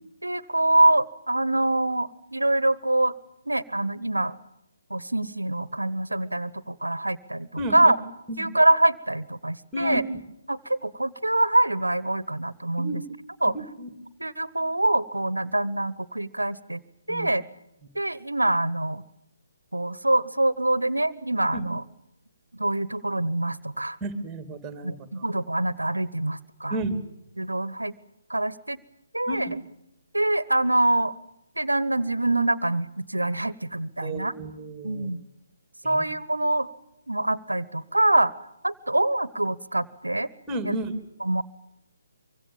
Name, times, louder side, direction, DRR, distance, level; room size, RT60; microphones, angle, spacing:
voice 1, 0.2-3.1 3.5-4.3 4.9-8.0 8.4-10.0 10.5-13.0 13.4-13.6 14.2-16.8 17.1-17.4 17.9-19.0 19.7-21.8 22.5-24.0 24.8-26.8 27.4-27.9 28.3-28.8 29.1-29.5 30.1-31.1 31.6-34.3 34.8-35.2 35.8-36.7 37.1-38.3 38.6-40.3 40.6-40.8 41.2-41.4, right 1 dB, 80° right, 19 dB, 1.0 m, -25 dB
voice 2, 7.6-7.9 8.3-8.5 9.7-10.1 12.8-13.0 13.8-13.9 17.1-17.3 21.5-21.6 24.0-25.2 26.7-27.0 29.3-29.5 34.0-35.1 35.8-36.0 40.5-41.0, right 1 dB, 10° right, 9 dB, 2.9 m, -32 dB
25.0 x 24.5 x 7.3 m, 0.87 s
figure-of-eight pair, 140°, 0 cm